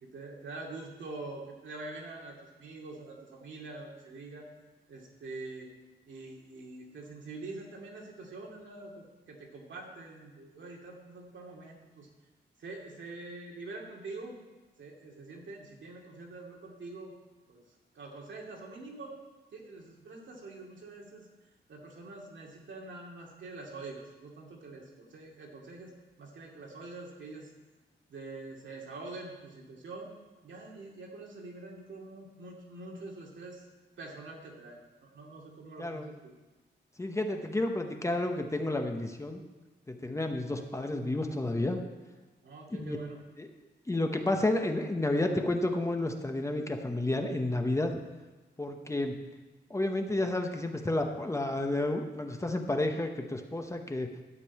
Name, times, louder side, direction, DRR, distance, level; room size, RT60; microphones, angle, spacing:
voice 1, 0.0-4.5 4.9-5.7 6.1-12.1 12.6-14.4 14.8-17.1 17.5-17.6 17.9-19.1 19.5-21.3 21.7-25.9 26.2-27.5 28.1-30.1 30.4-33.6 34.0-36.3 42.4-43.2, right 3 dB, 80° right, -1 dB, 2.4 m, -45 dB
voice 2, 37.0-39.4 39.9-41.8 42.8-43.0 43.4-43.5 43.9-48.0 48.6-49.1 49.7-54.1, left 2 dB, 15° left, 4 dB, 0.9 m, -31 dB
12.5 x 5.4 x 8.4 m, 1.2 s
wide cardioid pair, 160°, 19 cm